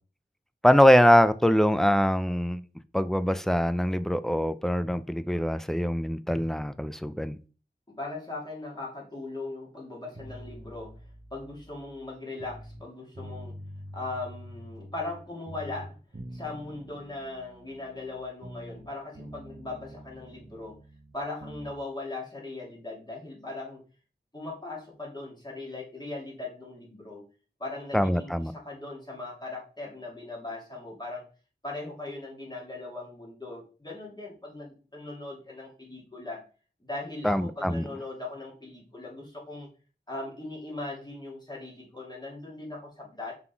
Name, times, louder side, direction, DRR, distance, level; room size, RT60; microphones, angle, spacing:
voice 1, 0.6-2.6 2.9-7.4 27.9-28.5 37.2-37.8, equal, ahead, 0.5 m, -23 dB
voice 2, 7.9-11.0 11.3-13.5 13.9-16.0 16.3-20.8 21.1-23.8 24.3-27.2 27.6-31.2 31.6-36.4 36.8-39.7 40.1-43.4, left 2 dB, 20° left, 3.0 m, -39 dB
sound 1, 10.1-12.8 13.1-15.2 15.5-18.9 19.1-21.8, equal, 45° right, 1.2 m, -45 dB
5.9 x 3.8 x 4.6 m
wide cardioid pair, 50°, 19 cm